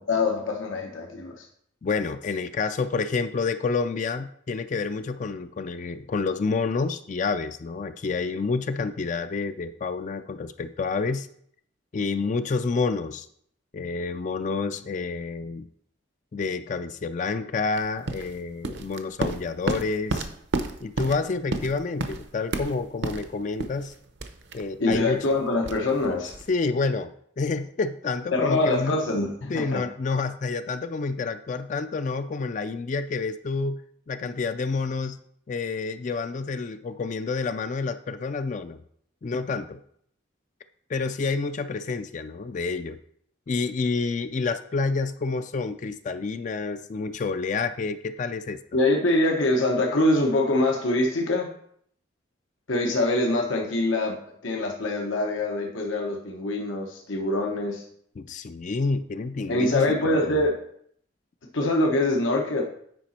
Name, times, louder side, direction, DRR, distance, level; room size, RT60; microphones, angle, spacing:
voice 1, 0.1-1.4 24.8-26.3 28.3-29.8 48.7-51.5 52.7-54.2 54.4-57.8 59.5-60.6 61.5-62.6, left 2 dB, 85° left, 1 dB, 1.0 m, -24 dB
voice 2, 1.8-11.3 11.9-13.3 13.7-15.7 16.3-20.3 20.8-23.9 24.5-25.3 26.5-29.0 29.5-33.8 34.1-35.2 35.5-38.8 39.2-39.8 40.9-43.0 43.5-48.6 58.2-60.4, left 4 dB, 40° left, 10 dB, 0.3 m, -28 dB
sound 1, 17.7-26.6, right 2 dB, 60° right, 0.7 m, -32 dB
9.1 x 5.0 x 4.2 m, 0.66 s
head